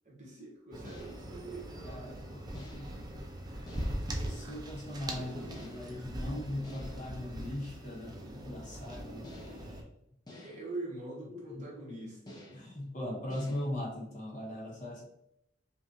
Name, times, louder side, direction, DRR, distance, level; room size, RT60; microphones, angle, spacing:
voice 1, 0.0-2.2 10.3-12.6, right 2 dB, 40° right, -4 dB, 1.4 m, -44 dB
sound 1, 0.7-9.8, right 1 dB, 20° right, 0.6 m, -41 dB
sound 2, 0.8-1.3 2.5-3.0 3.7-4.2 5.5-6.1 6.6-7.2 9.2-9.7 10.3-10.8 12.3-12.8 13.3-13.7, left 1 dB, 20° left, 0.7 m, -52 dB
voice 2, 1.8-3.7 4.2-9.9 11.3-11.9 12.5-15.0, left 1 dB, 45° left, -2 dB, 1.1 m, -40 dB
5.2 x 2.5 x 2.8 m, 0.77 s
head